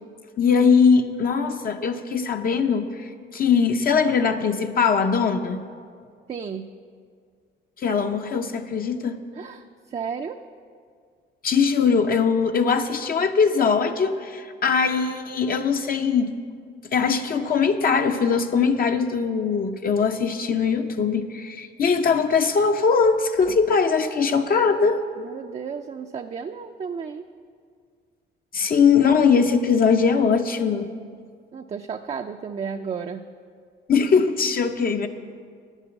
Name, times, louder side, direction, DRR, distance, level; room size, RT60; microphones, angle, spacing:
voice 1, 0.4-5.6 7.8-9.2 11.4-16.4 16.9-25.0 28.5-30.9 33.9-35.1, left 5 dB, 45° left, 6 dB, 0.6 m, -21 dB
voice 2, 6.3-6.7 9.4-10.4 25.2-27.2 31.5-33.2, right 6 dB, 35° right, 5 dB, 0.4 m, -33 dB
9.1 x 8.1 x 7.0 m, 2.1 s
cardioid pair, 90°, 20 cm